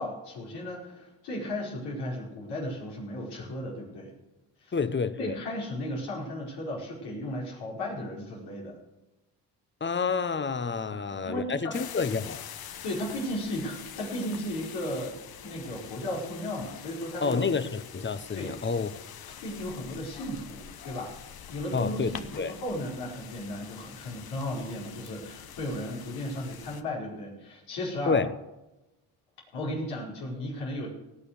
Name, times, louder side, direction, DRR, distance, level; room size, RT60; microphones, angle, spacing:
voice 1, 0.0-4.1 4.6-4.7 5.2-8.8 10.9-11.0 11.2-11.7 12.8-15.2 15.4-17.4 18.3-18.5 19.3-28.2 29.5-30.9, left 1 dB, 85° left, -3 dB, 5.0 m, -35 dB
voice 2, 4.7-5.4 9.8-12.4 17.2-19.0 21.7-22.5 28.1-28.3, left 5 dB, 30° left, 14 dB, 1.0 m, -29 dB
sound 1, 11.7-26.8, left 9 dB, 65° left, 1.2 m, -45 dB
18.0 x 7.0 x 6.6 m, 1.0 s
supercardioid pair, 60°, 39 cm